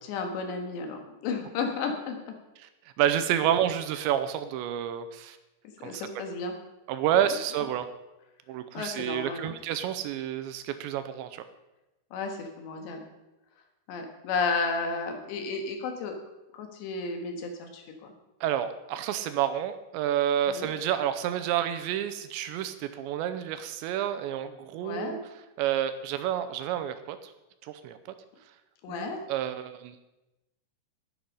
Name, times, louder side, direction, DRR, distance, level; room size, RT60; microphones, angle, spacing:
voice 1, 0.0-2.4 5.7-6.5 8.7-9.6 12.1-13.0 13.9-16.1 16.5-18.1 20.5-20.7 24.8-25.2 28.8-29.2, left 4 dB, 75° left, 4 dB, 3.7 m, -33 dB
voice 2, 3.0-5.4 5.8-6.0 6.9-7.9 8.5-11.4 18.4-25.2 25.6-27.3 27.6-28.0 28.9-30.0, right 10 dB, 85° right, 11 dB, 2.9 m, -29 dB
11.5 x 10.5 x 5.4 m, 0.99 s
omnidirectional pair, 5.3 m